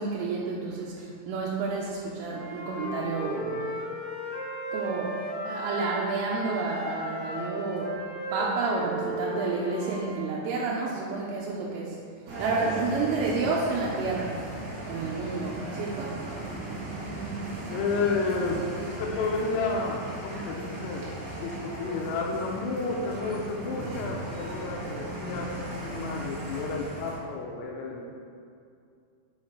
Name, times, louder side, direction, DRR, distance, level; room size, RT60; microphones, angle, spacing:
voice 1, 0.0-3.7 4.7-8.0 8.3-12.1 12.4-14.5 14.9-16.2, right 3 dB, 90° right, -4 dB, 3.3 m, -30 dB
Wind instrument woodwind instrument, 2.3-6.1 6.4-10.2, equal, 50° left, 2.6 m, -36 dB
sound 1, 12.3-27.2, right 1 dB, 60° right, 2.8 m, -37 dB
voice 2, 17.7-21.1 21.4-28.1, left 4 dB, 85° left, -1 dB, 3.4 m, -31 dB
7.1 x 5.7 x 4.6 m, 2.4 s
omnidirectional pair, 5.8 m